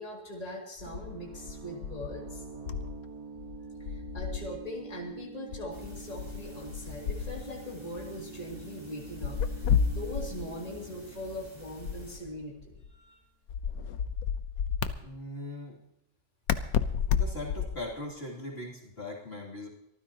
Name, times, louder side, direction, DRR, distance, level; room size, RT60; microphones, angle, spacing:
voice 1, 0.0-2.4 3.8-13.2, left 1 dB, 25° left, -2 dB, 2.7 m, -41 dB
sound 1, 0.8-3.1 3.4-4.6 5.5-7.7 9.2-10.5 11.9-12.9 13.5-14.9 16.5-17.9, left 7 dB, 80° left, 1.3 m, -32 dB
sound 2, 0.9-12.4, right 5 dB, 70° right, 1.6 m, -47 dB
sound 3, 5.7-12.2, left 2 dB, 10° right, 4.5 m, -51 dB
voice 2, 15.0-15.8 17.1-19.7, left 2 dB, 45° left, -2 dB, 3.0 m, -40 dB
24.5 x 14.5 x 2.9 m, 0.81 s
omnidirectional pair, 1.6 m